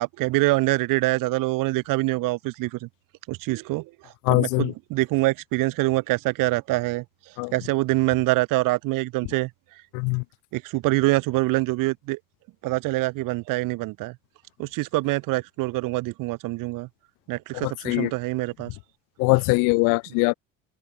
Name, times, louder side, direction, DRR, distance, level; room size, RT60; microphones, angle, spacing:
voice 1, 0.0-2.9 3.3-7.0 7.5-9.5 10.5-12.2 12.6-14.2 14.6-16.9 17.3-18.7, right 21 dB, 55° right, 1.0 m, -25 dB
voice 2, 4.3-4.7 7.4-7.5 9.9-10.2 17.6-18.1 19.2-20.3, left 31 dB, 55° left, 0.5 m, -22 dB
hypercardioid pair, 60°, 39 cm